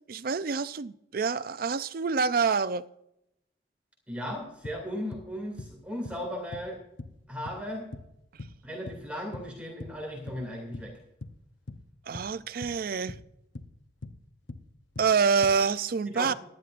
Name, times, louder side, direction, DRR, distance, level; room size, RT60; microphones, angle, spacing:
voice 1, 0.1-2.9 12.1-13.1 15.0-16.3, right 5 dB, 50° right, 0.5 m, -27 dB
voice 2, 4.1-6.8 7.3-7.9 8.6-11.0 16.1-16.3, equal, 5° right, 2.4 m, -36 dB
sound 1, 4.4-4.5 4.6-5.3 5.6-6.2 6.5-6.7 7.0-7.2 7.4-8.1 8.4-9.5 9.8-10.5 10.7-11.4 11.7-11.9 12.1-12.8 13.1-13.7 14.0-14.2 14.5-14.7 14.9-15.6, left 2 dB, 75° left, 0.8 m, -42 dB
18.0 x 12.0 x 2.5 m
head